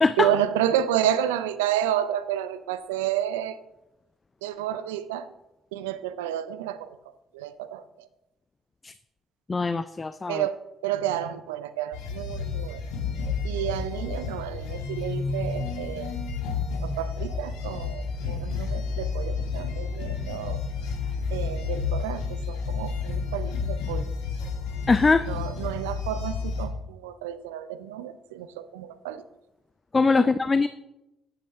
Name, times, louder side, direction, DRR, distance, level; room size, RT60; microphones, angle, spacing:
voice 1, 0.2-3.6 4.4-5.3 5.7-7.0 7.3-8.1 10.3-12.8 13.4-16.1 16.8-20.6 21.3-24.0 25.3-29.2 30.2-30.3, right 11 dB, 80° right, 13 dB, 0.5 m, -30 dB
voice 2, 9.5-10.5 24.9-25.3 29.9-30.7, left 4 dB, 30° left, 13 dB, 0.4 m, -22 dB
sound 1, 11.9-26.7, left 5 dB, 75° left, 1.5 m, -31 dB
10.5 x 8.3 x 2.7 m, 0.93 s
hypercardioid pair, 50°, 0 cm